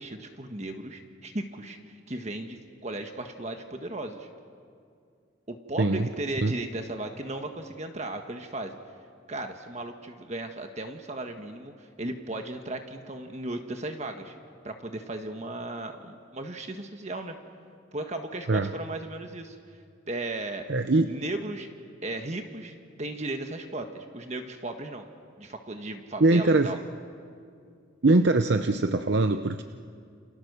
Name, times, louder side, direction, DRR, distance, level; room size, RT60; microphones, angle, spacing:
voice 1, 0.0-4.3 5.5-8.8 9.3-14.3 14.6-17.4 17.9-19.6 20.1-20.7 21.1-21.7 22.0-25.0 25.4-26.8, right 2 dB, 35° right, 5 dB, 1.4 m, -36 dB
voice 2, 5.8-6.1 6.4-6.5 18.5-18.7 20.7-21.2 26.2-26.7 28.0-29.6, right 2 dB, 60° right, 8 dB, 0.8 m, -22 dB
29.0 x 29.0 x 6.8 m, 2.3 s
head